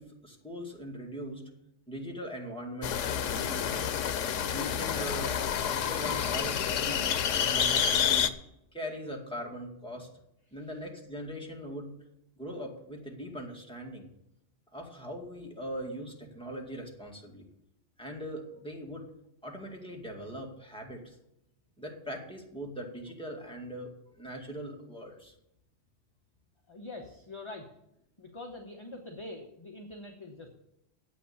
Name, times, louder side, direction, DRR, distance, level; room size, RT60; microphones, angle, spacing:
voice 1, 0.0-1.4 1.9-3.9 4.5-7.1 7.4-8.3 8.7-10.1 10.5-11.9 12.4-14.1 14.7-17.5 18.0-19.1 19.4-21.1 21.8-23.9 24.2-25.3, equal, 5° left, -1 dB, 2.1 m, -40 dB
sound 1, 2.8-8.3, left 8 dB, 90° left, 1.1 m, -29 dB
voice 2, 26.7-27.7 28.2-30.5, left 2 dB, 25° left, 2 dB, 1.1 m, -44 dB
9.7 x 8.4 x 7.0 m, 0.82 s
omnidirectional pair, 1.3 m